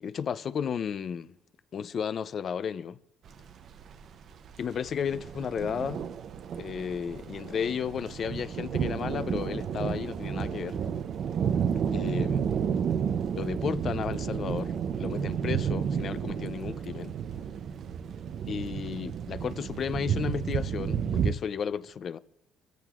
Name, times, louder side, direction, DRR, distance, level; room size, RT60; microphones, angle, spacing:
voice 1, 0.0-1.3 1.7-3.0 4.6-6.1 6.5-10.8 11.9-12.4 13.3-17.1 18.5-22.2, left 7 dB, 45° left, 0.5 m, -33 dB
sound 1, 3.3-21.3, right 7 dB, 55° right, 0.5 m, -31 dB
26.5 x 14.5 x 2.4 m
cardioid pair, 125°, 0 cm